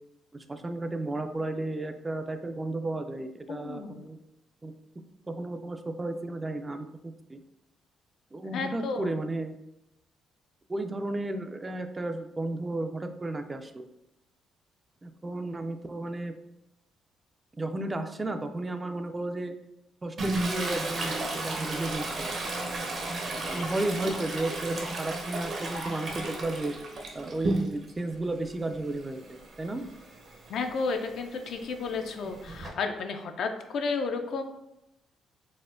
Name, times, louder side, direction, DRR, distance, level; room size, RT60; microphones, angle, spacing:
voice 1, 0.3-4.2 4.6-4.7 5.3-7.4 8.3-9.6 10.7-13.9 15.0-16.3 17.6-19.5 20.0-22.4 23.4-26.7 27.1-29.2 29.6-29.8, right 2 dB, 20° right, 7 dB, 0.3 m, -33 dB
voice 2, 3.5-4.0 8.5-9.1 23.5-23.6 30.5-34.4, left 4 dB, 70° left, 6 dB, 0.4 m, -32 dB
Toilet flush, 20.2-28.0 28.4-32.7, right 2 dB, 55° right, 0.7 m, -34 dB
4.1 x 2.1 x 2.4 m, 0.86 s
cardioid pair, 90°, 0 cm